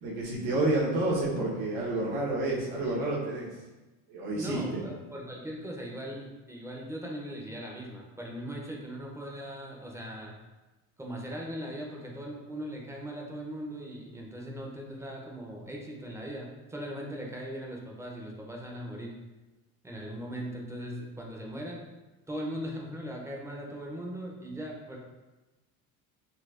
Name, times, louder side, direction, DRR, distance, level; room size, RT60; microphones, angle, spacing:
voice 1, 0.0-3.5 4.1-4.8, right 2 dB, 70° right, -5 dB, 1.1 m, -29 dB
voice 2, 4.3-10.3 11.0-19.2 19.8-21.9 22.3-25.0, equal, 5° right, -2 dB, 0.5 m, -39 dB
4.1 x 2.3 x 2.4 m, 1.1 s
supercardioid pair, 95°, 38 cm